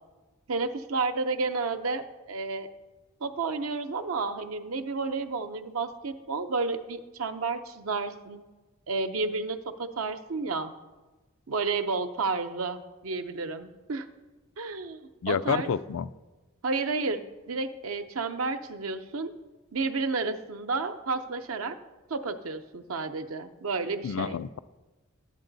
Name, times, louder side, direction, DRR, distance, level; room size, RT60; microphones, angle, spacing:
voice 1, 0.5-2.7 3.2-8.4 8.9-10.7 11.5-14.1 14.6-15.0 15.3-15.7 16.6-17.2 17.5-19.3 19.7-21.8 22.1-24.4, right 4 dB, 80° right, 8 dB, 0.7 m, -31 dB
voice 2, 15.2-16.1 24.0-24.6, left 7 dB, 70° left, 15 dB, 0.4 m, -29 dB
11.5 x 8.8 x 4.0 m, 1.2 s
head